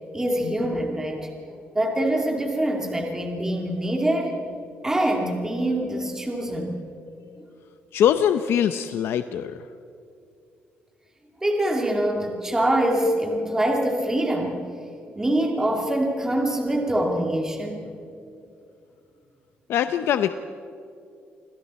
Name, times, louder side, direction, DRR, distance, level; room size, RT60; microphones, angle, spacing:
voice 1, 0.1-1.3 1.7-4.4 4.8-6.8 11.4-14.6 15.2-17.9, right 1 dB, 15° right, 1 dB, 2.4 m, -24 dB
voice 2, 7.9-9.6 19.7-20.3, left 9 dB, 75° left, 10 dB, 0.7 m, -22 dB
28.0 x 25.5 x 4.3 m, 2.6 s
cardioid pair, 135°, 4 cm